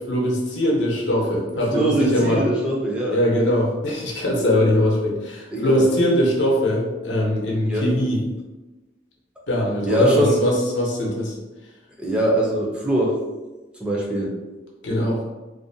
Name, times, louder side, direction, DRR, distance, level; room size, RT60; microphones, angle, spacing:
voice 1, 0.1-2.4 3.1-8.2 9.5-11.3 14.8-15.2, left 1 dB, 90° left, -2 dB, 0.6 m, -21 dB
voice 2, 1.7-3.2 5.5-5.9 7.6-7.9 9.9-10.4 12.0-13.2 13.8-14.4, right 1 dB, 5° right, -4 dB, 0.4 m, -22 dB
2.5 x 2.1 x 2.6 m, 1.1 s
head